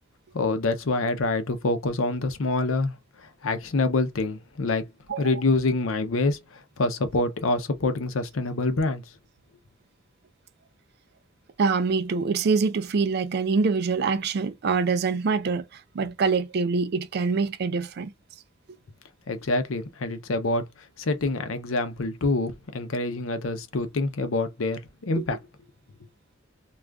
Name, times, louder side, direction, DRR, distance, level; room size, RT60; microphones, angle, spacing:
voice 1, 0.3-4.8 5.2-9.0 19.3-20.7 21.0-25.4, left 2 dB, 90° left, 0.7 m, -26 dB
voice 2, 11.6-18.1 25.2-25.3, right 4 dB, 55° right, 0.4 m, -25 dB
2.4 x 2.4 x 3.4 m
head